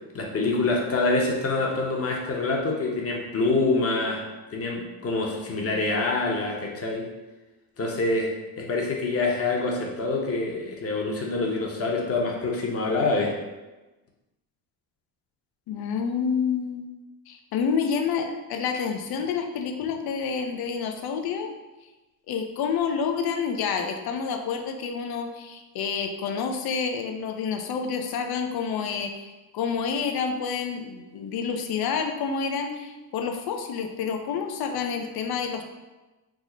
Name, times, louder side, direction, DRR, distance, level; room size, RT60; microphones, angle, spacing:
voice 1, 0.1-4.2 4.5-7.1 7.8-8.3 8.6-13.4, left 3 dB, 30° left, -1 dB, 0.9 m, -26 dB
voice 2, 15.7-16.9 17.3-21.5 22.3-35.6, left 6 dB, 55° left, 5 dB, 0.6 m, -28 dB
3.6 x 2.1 x 3.8 m, 1.1 s
supercardioid pair, 65°, 45 cm